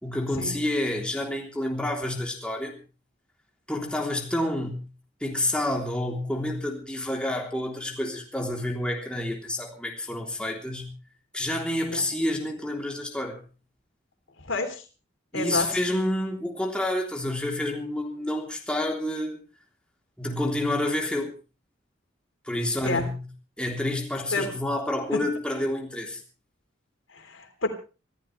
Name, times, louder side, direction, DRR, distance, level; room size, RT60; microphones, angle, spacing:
voice 1, 0.0-2.8 3.7-4.9 5.2-11.0 11.3-13.4 15.3-19.4 20.2-21.3 22.4-23.3 23.6-26.2, left 1 dB, 5° left, 0 dB, 3.4 m, -29 dB
voice 2, 14.5-14.8 15.3-15.7 22.9-23.0 24.3-24.5 25.1-25.2 27.1-27.7, left 2 dB, 90° left, 6 dB, 3.5 m, -28 dB
26.0 x 14.0 x 3.3 m, 0.35 s
head